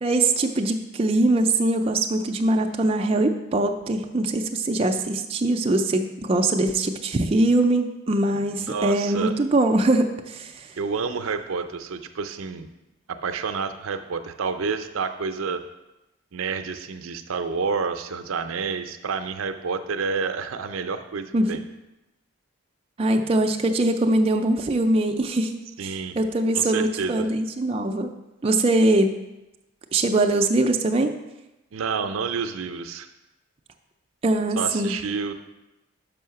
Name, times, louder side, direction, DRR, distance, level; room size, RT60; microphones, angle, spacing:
voice 1, 0.0-10.7 21.3-21.5 23.0-28.1 28.4-29.2 29.9-31.1 34.2-35.0, right 2 dB, 25° right, 3 dB, 0.4 m, -22 dB
voice 2, 8.7-9.3 10.8-12.7 13.1-15.6 16.3-21.6 25.8-26.2 26.5-27.3 31.7-33.1 34.6-35.3, right 5 dB, 75° right, 8 dB, 0.5 m, -29 dB
5.6 x 5.5 x 5.7 m, 0.98 s
head